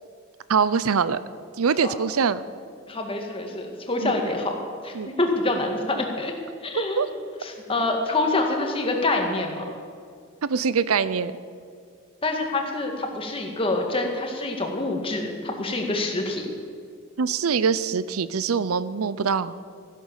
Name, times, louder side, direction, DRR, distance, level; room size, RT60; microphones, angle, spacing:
voice 1, 0.5-1.2 1.6-2.4 4.0-4.1 4.9-5.1 6.8-7.1 10.4-11.3 17.2-19.5, right 6 dB, 90° right, 16 dB, 0.6 m, -23 dB
voice 2, 2.9-4.6 4.8-6.3 6.6-7.1 7.4-9.6 12.2-16.5, left 2 dB, 25° left, 2 dB, 2.0 m, -26 dB
14.5 x 11.5 x 7.3 m, 2.2 s
head